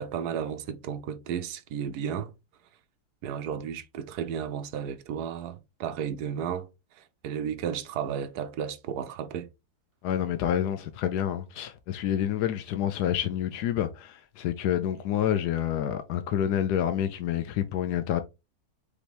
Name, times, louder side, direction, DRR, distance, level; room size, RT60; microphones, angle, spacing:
voice 1, 0.0-2.3 3.2-6.7 6.9-9.5, right 8 dB, 80° right, 1.2 m, -33 dB
voice 2, 10.0-18.2, left 10 dB, 85° left, 1.2 m, -28 dB
5.1 x 3.0 x 3.3 m
omnidirectional pair, 1.7 m